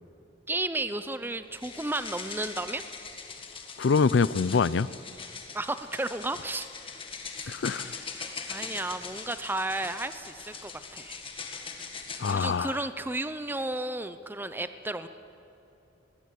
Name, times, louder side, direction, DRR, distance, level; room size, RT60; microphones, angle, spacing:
voice 1, 0.5-2.8 5.5-6.7 7.4-7.6 8.5-11.2 12.3-15.1, right 2 dB, 10° right, 11 dB, 0.6 m, -33 dB
sound 1, 1.5-12.6, left 5 dB, 30° left, 1.7 m, -41 dB
voice 2, 3.8-4.9 7.5-8.0 12.2-12.8, left 5 dB, 65° left, 19 dB, 0.4 m, -25 dB
20.0 x 16.0 x 8.4 m, 2.9 s
head